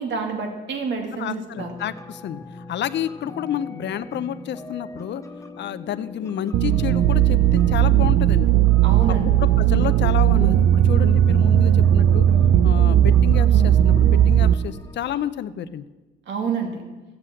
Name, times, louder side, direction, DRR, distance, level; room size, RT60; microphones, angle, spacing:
voice 1, 0.0-1.7 8.8-9.3 16.3-16.8, right 5 dB, 65° right, 3 dB, 2.5 m, -28 dB
voice 2, 1.2-5.2 5.6-8.5 9.1-12.3 12.6-15.9, left 10 dB, 60° left, 13 dB, 0.6 m, -30 dB
sound 1, 1.6-15.3, left 1 dB, 15° left, 0.9 m, -40 dB
sound 2, 6.5-14.5, right 11 dB, 85° right, 0.5 m, -17 dB
14.0 x 7.8 x 7.6 m, 1.2 s
cardioid pair, 90°, 20 cm